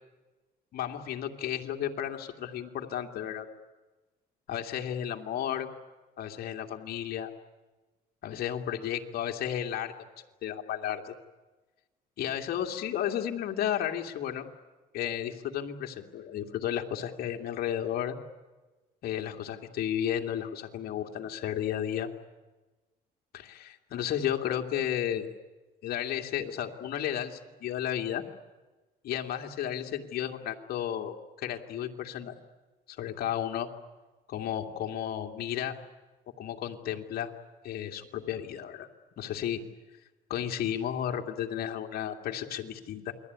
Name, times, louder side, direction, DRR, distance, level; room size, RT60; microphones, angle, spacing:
voice 1, 0.7-3.5 4.5-5.7 6.2-7.3 8.2-9.9 10.4-11.1 12.2-14.5 14.9-18.2 19.0-22.1 23.3-25.3 25.8-28.2 29.0-32.3 32.9-33.7 34.3-35.7 36.4-37.3 37.6-38.9 39.2-39.6 40.3-43.1, left 10 dB, 65° left, 3 dB, 2.5 m, -33 dB
28.5 x 21.5 x 9.6 m, 1.2 s
cardioid pair, 110°, 17 cm